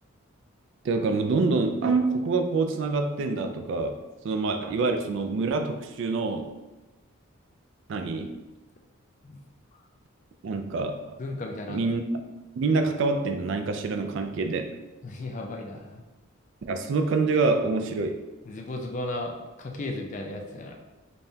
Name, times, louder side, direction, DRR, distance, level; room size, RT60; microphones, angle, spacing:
voice 1, 0.8-4.0 4.2-6.5 7.9-8.3 10.4-11.2 11.7-12.0 12.6-14.7 16.7-18.2, right 3 dB, 55° right, 6 dB, 0.3 m, -26 dB
voice 2, 11.2-11.8 15.0-16.0 18.5-20.7, left 2 dB, 35° left, 2 dB, 0.4 m, -35 dB
5.3 x 2.2 x 2.7 m, 1.1 s
head